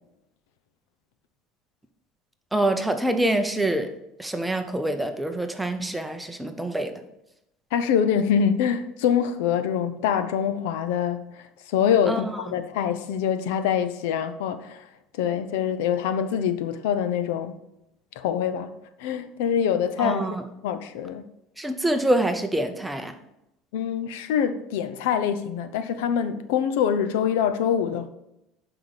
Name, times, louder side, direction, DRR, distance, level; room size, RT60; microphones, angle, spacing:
voice 1, 2.5-3.9 4.2-6.9 12.1-12.3 20.0-20.4 21.6-23.1, right 1 dB, 5° right, 0.7 m, -25 dB
voice 2, 7.7-14.8 15.2-17.6 18.2-18.7 19.0-20.3 20.6-21.2 23.7-28.1, left 8 dB, 90° left, 0.7 m, -25 dB
11.5 x 5.0 x 4.1 m
cardioid pair, 145°, 0 cm